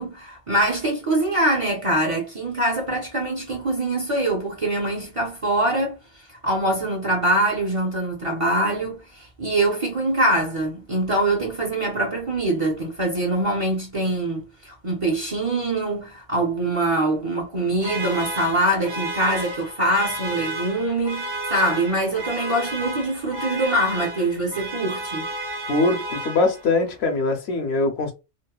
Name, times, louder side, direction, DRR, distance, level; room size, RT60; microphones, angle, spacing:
voice 1, 0.0-6.0 6.4-25.3, right 1 dB, 35° right, 0.6 m, -24 dB
sound 1, 17.8-26.8, right 1 dB, 75° right, 1.2 m, -32 dB
voice 2, 25.7-28.1, left 3 dB, 70° left, 0.9 m, -22 dB
3.0 x 2.0 x 2.2 m
omnidirectional pair, 1.1 m